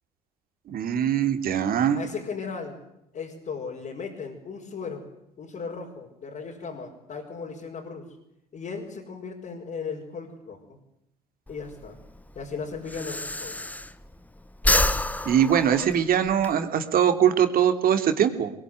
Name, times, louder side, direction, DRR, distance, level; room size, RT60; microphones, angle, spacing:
voice 1, 0.7-2.0 15.2-18.5, right 9 dB, 50° right, 7 dB, 3.2 m, -22 dB
voice 2, 1.9-2.8 3.1-5.1 5.4-8.1 8.5-10.8 11.5-12.0 12.4-13.6, left 5 dB, 45° left, -2 dB, 5.5 m, -36 dB
Breathing, 11.5-14.2 14.5-16.5, left 1 dB, 10° left, 1.4 m, -27 dB
23.5 x 21.5 x 9.6 m, 0.83 s
hypercardioid pair, 65°, 19 cm